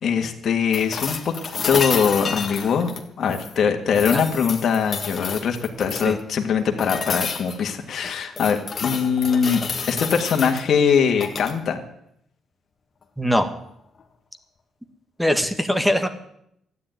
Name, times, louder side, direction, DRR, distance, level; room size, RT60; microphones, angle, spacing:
voice 1, 0.0-1.3 1.7-9.6 9.9-11.8, left 6 dB, 55° left, 3 dB, 1.9 m, -22 dB
sound 1, 0.7-3.6 3.9-6.2 6.8-7.6 8.0-10.6 11.1-11.6 13.6-13.7, left 5 dB, 40° left, 1.8 m, -30 dB
voice 2, 13.2-13.5 15.2-16.1, equal, 5° right, 9 dB, 1.6 m, -21 dB
13.0 x 9.8 x 9.1 m, 0.74 s
cardioid pair, 90°, 0 cm